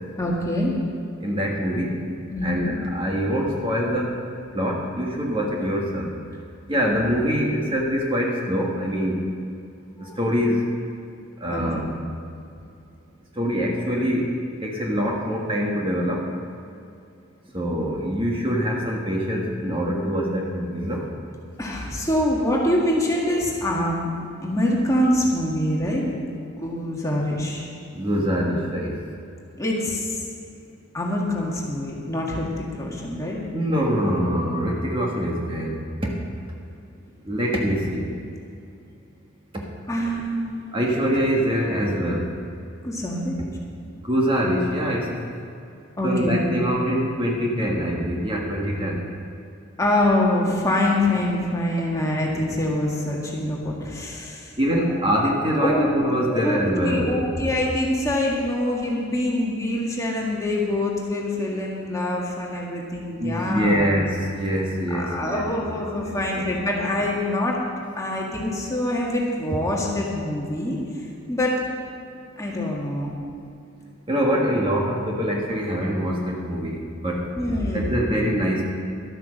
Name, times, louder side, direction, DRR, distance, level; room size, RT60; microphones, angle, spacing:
voice 1, 0.2-0.7 2.3-2.6 10.0-10.2 11.5-11.9 21.6-24.1 24.4-26.3 26.6-27.7 29.6-30.3 30.9-33.4 39.9-40.7 42.8-43.4 46.0-46.5 49.8-54.5 54.9-55.0 55.6-63.9 64.9-67.6 68.0-70.8 71.3-71.5 72.4-73.1 77.4-77.9, left 1 dB, 15° left, -3 dB, 1.7 m, -25 dB
voice 2, 1.2-2.0 2.4-4.1 4.5-6.1 6.7-9.3 10.0-10.6 11.4-11.9 13.3-14.3 14.6-16.3 17.5-21.1 27.9-28.9 33.5-35.8 36.0-36.1 37.2-38.1 39.5-39.7 40.7-42.3 44.0-45.2 46.0-49.0 54.6-57.1 63.2-66.5 74.1-77.3 77.7-78.6, equal, 25° right, -2 dB, 1.6 m, -24 dB
12.0 x 9.1 x 6.5 m, 2.6 s
head